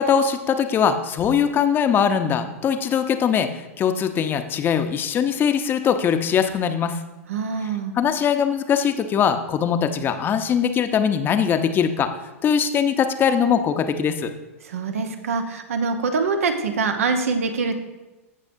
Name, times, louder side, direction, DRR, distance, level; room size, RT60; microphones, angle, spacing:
voice 1, 0.0-3.5 3.8-7.0 7.9-12.1 12.4-14.3, left 7 dB, 25° left, 8 dB, 0.8 m, -21 dB
voice 2, 7.3-7.9 14.6-17.8, right 4 dB, 75° right, 6 dB, 1.0 m, -24 dB
16.0 x 6.4 x 2.7 m, 1.1 s
hypercardioid pair, 105°, 8 cm